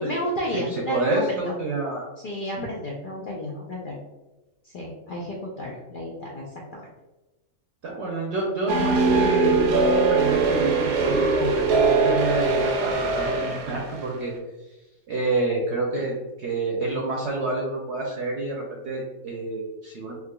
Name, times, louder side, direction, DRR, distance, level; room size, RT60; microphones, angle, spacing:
voice 1, 0.0-1.5 2.2-4.0 4.6-6.5 6.7-6.9 8.8-9.0 15.9-16.0, left 1 dB, 70° left, -3 dB, 0.5 m, -31 dB
voice 2, 0.9-2.1 2.6-2.7 7.8-14.3 15.1-20.1, right 2 dB, 65° right, -1 dB, 0.8 m, -28 dB
sound 1, 8.7-14.0, right 3 dB, 90° right, 1.1 m, -22 dB
3.6 x 2.9 x 2.2 m, 1.0 s
omnidirectional pair, 1.5 m